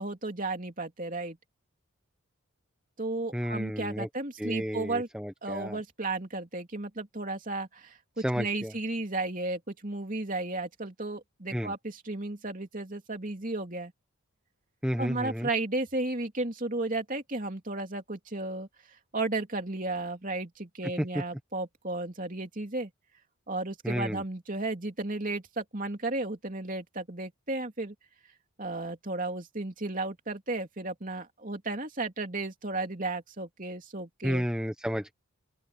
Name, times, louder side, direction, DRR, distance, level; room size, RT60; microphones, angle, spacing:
voice 1, 0.0-1.4 3.0-5.1 5.4-13.9 15.0-18.7 19.1-22.9 23.5-27.9 28.6-34.4, right 2 dB, 35° right, 3.1 m, -34 dB
voice 2, 3.3-4.1 4.4-5.8 8.2-8.7 11.5-11.7 14.8-15.5 23.8-24.2 34.2-35.1, equal, 5° right, 1.2 m, -32 dB
open air
head